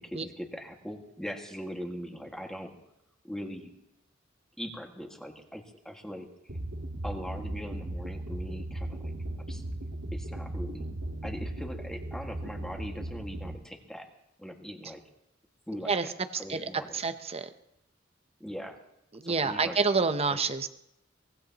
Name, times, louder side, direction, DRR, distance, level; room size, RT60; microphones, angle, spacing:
voice 1, 0.0-2.7 3.2-3.7 4.6-6.3 7.0-9.1 9.5-9.6 10.1-10.8 11.2-14.1 14.4-15.0 15.7-16.1 16.4-17.0 18.4-18.8 19.2-19.8 20.3-20.4, equal, 5° left, 2 dB, 1.8 m, -40 dB
sound 1, 6.5-13.5, right 1 dB, 70° right, 1.7 m, -37 dB
voice 2, 16.5-17.5 19.1-20.7, right 4 dB, 30° right, 10 dB, 0.8 m, -28 dB
23.5 x 20.0 x 3.0 m, 0.82 s
head